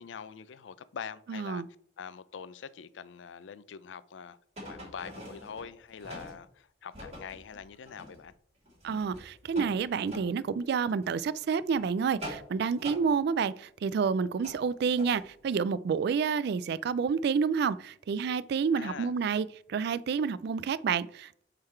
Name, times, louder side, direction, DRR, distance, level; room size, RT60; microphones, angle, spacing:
voice 1, 0.0-1.6 2.0-4.4 4.7-8.3 18.7-19.1, left 6 dB, 90° left, 0.4 m, -44 dB
voice 2, 1.3-1.7 8.8-21.4, right 6 dB, 60° right, 0.3 m, -29 dB
sound 1, 4.6-6.4 6.9-8.3 8.6-10.3 10.9-11.1 11.5-13.0 14.4-15.3 15.5-15.6, equal, 35° right, 2.9 m, -44 dB
7.7 x 3.8 x 4.4 m
head